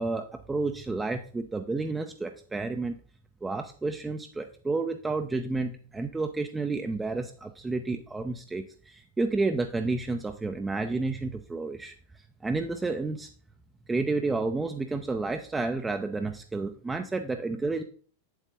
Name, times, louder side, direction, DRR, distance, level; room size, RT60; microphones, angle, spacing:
voice 1, 0.0-3.0 3.4-11.9 12.4-13.3 13.9-17.8, right 3 dB, 10° right, 6 dB, 0.6 m, -30 dB
8.1 x 7.9 x 3.4 m, 0.43 s
figure-of-eight pair, 90°, 0 cm